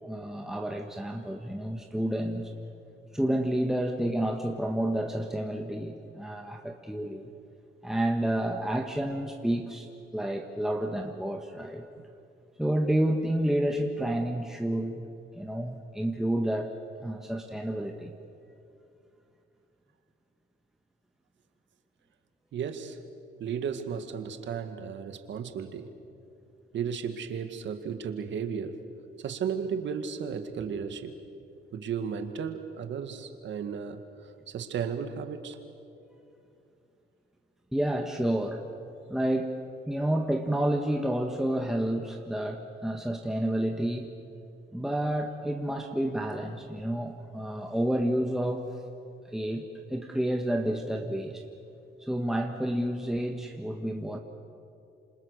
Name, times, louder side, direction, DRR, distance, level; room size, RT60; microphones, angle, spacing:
voice 1, 0.0-2.5 3.1-7.3 7.8-11.8 12.6-15.0 15.3-16.7 17.0-18.1 37.7-38.6 39.1-39.6 39.9-44.1 44.7-48.7 49.2-51.4 52.0-54.2, right 1 dB, ahead, 2 dB, 1.6 m, -30 dB
voice 2, 22.5-23.0 23.4-25.9 26.7-28.8 29.2-31.2 31.7-34.0 34.5-35.6, right 7 dB, 70° right, 7 dB, 2.0 m, -34 dB
27.5 x 26.5 x 6.7 m, 2.7 s
cardioid pair, 90°, 20 cm